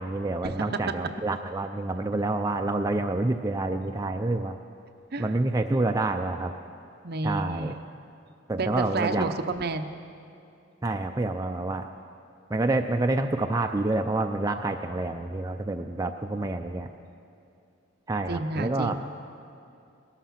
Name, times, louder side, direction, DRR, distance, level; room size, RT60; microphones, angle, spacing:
voice 1, 0.0-4.6 5.2-6.5 7.2-7.7 8.5-9.3 10.8-11.9 12.5-16.9 18.1-19.0, right 2 dB, 15° right, 4 dB, 0.4 m, -28 dB
voice 2, 7.0-7.8 8.6-9.9 18.3-19.0, right 3 dB, 50° right, 7 dB, 0.7 m, -30 dB
18.0 x 13.0 x 5.8 m, 2.6 s
head